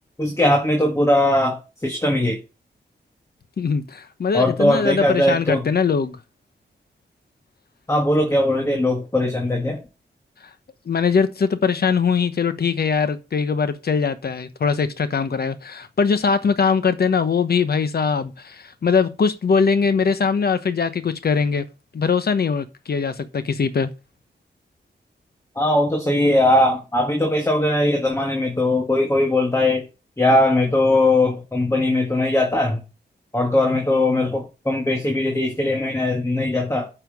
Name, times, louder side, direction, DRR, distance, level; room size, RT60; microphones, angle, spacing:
voice 1, 0.2-2.4 4.3-5.7 7.9-9.8 25.6-29.9 30.2-32.8 33.3-36.9, left 1 dB, 15° left, 1.7 m, -20 dB
voice 2, 3.6-6.2 10.9-21.6 21.9-23.9, left 5 dB, 60° left, 1.1 m, -21 dB
9.6 x 5.6 x 5.5 m
wide cardioid pair, 115°, 19 cm